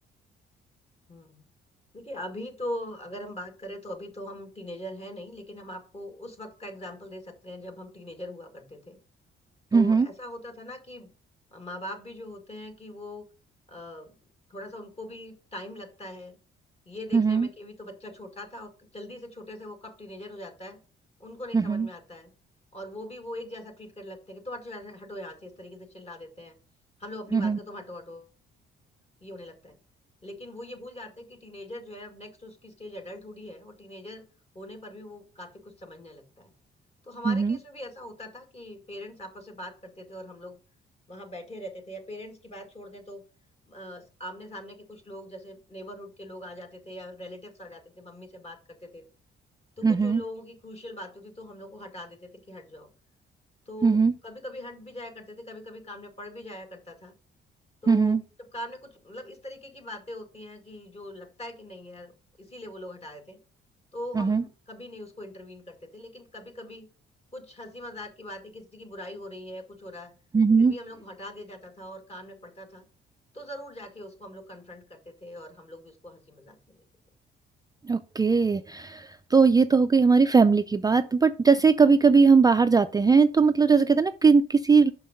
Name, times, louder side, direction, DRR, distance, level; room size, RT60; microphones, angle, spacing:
voice 1, 1.1-1.4 1.9-9.0 9.7-11.1 11.5-13.2 13.7-14.2 14.5-16.4 16.9-20.8 21.2-22.3 22.7-26.6 27.0-28.3 29.2-29.8 30.2-34.2 34.5-36.5 37.0-40.6 41.1-43.2 43.7-49.1 49.8-52.9 53.7-57.1 57.8-58.2 58.5-63.4 63.9-66.9 67.3-70.1 70.6-72.9 73.3-76.8, left 1 dB, 30° left, 4 dB, 2.2 m, -41 dB
voice 2, 9.7-10.1 17.1-17.5 21.5-21.9 27.3-27.6 37.3-37.6 49.8-50.2 53.8-54.1 57.9-58.2 64.2-64.4 70.3-70.7 77.8-84.9, right 5 dB, 20° right, 9 dB, 0.4 m, -20 dB
6.0 x 5.5 x 5.2 m, 0.36 s
cardioid pair, 90°, 20 cm